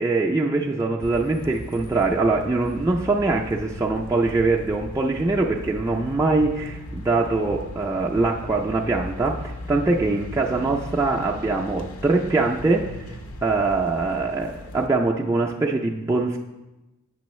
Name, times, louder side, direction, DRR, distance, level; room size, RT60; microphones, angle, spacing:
voice 1, 0.0-12.9 13.4-16.4, right 3 dB, 15° right, -2 dB, 0.3 m, -23 dB
sound 1, 1.0-14.9, left 1 dB, 80° left, 0.7 m, -38 dB
8.3 x 6.1 x 3.1 m, 1.0 s
head